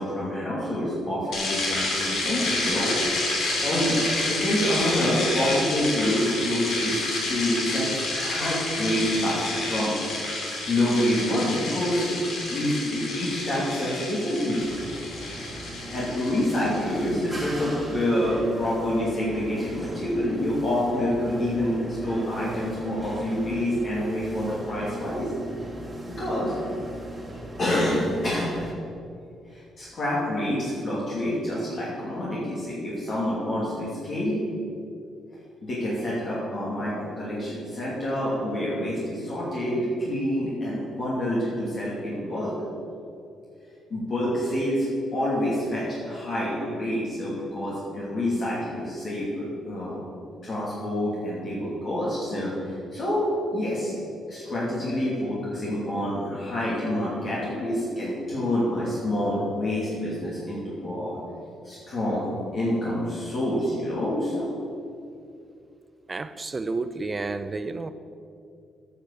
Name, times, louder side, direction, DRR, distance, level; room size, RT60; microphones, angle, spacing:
voice 1, 0.0-2.9 3.6-4.0 4.3-9.9 10.7-12.2 12.5-14.6 15.9-25.3 26.0-26.5 27.6-28.5 29.5-34.4 35.6-42.5 43.9-50.0 50.4-53.3 53.5-53.9 54.3-61.2 61.6-62.3 62.5-64.5, left 1 dB, 45° left, -7 dB, 2.7 m, -27 dB
sound 1, 1.3-17.6, left 2 dB, 75° left, 2.8 m, -29 dB
sound 2, 14.6-28.7, right 1 dB, 10° right, 2.1 m, -38 dB
voice 2, 66.1-67.9, right 3 dB, 30° right, 12 dB, 0.5 m, -31 dB
9.6 x 5.9 x 6.8 m, 2.5 s
cardioid pair, 90°, 0 cm